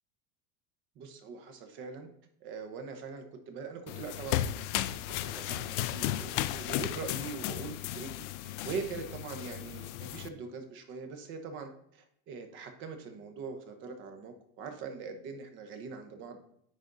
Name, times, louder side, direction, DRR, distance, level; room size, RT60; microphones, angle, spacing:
voice 1, 1.0-2.1 2.4-4.4 4.7-16.4, right 5 dB, 35° right, 7 dB, 0.9 m, -42 dB
sound 1, 3.9-10.3, left 13 dB, 85° left, 0.5 m, -35 dB
10.0 x 4.0 x 3.9 m, 0.71 s
supercardioid pair, 170°, 35 cm